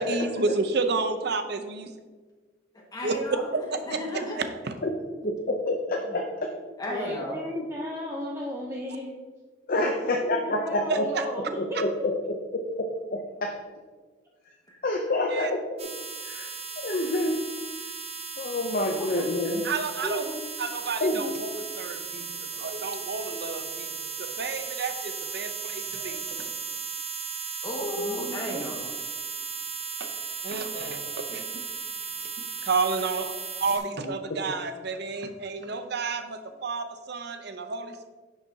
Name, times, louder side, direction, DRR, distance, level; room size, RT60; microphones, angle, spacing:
voice 1, 0.1-1.9 3.0-3.1 3.9-4.0 4.6-4.7 10.9-11.2 15.3-15.5 19.6-20.2 20.6-22.3 22.6-23.9 24.4-26.5 28.5-28.6 30.0-30.1 30.4-31.6 32.6-33.3 33.6-38.1, right 4 dB, 60° right, 8 dB, 0.7 m, -31 dB
voice 2, 2.7-3.4 3.9-4.4 6.8-7.4 14.7-14.8 15.1-15.2 27.6-28.8, left 1 dB, 20° left, -2 dB, 1.6 m, -34 dB
voice 3, 5.2-6.5 7.5-7.6 9.7-11.1 11.6-12.1 12.5-13.5 14.8-15.6 16.2-16.5 16.8-17.4 18.4-19.6 21.0-21.2 34.3-34.4, left 1 dB, 50° left, 2 dB, 0.7 m, -27 dB
voice 4, 6.9-9.2 10.0-12.1 18.9-19.3 20.0-20.4 21.2-21.3 28.0-28.7, equal, 15° right, -2 dB, 0.7 m, -35 dB
sound 1, 15.8-33.8, right 6 dB, 35° right, 1.0 m, -36 dB
10.0 x 6.8 x 2.8 m, 1.4 s
head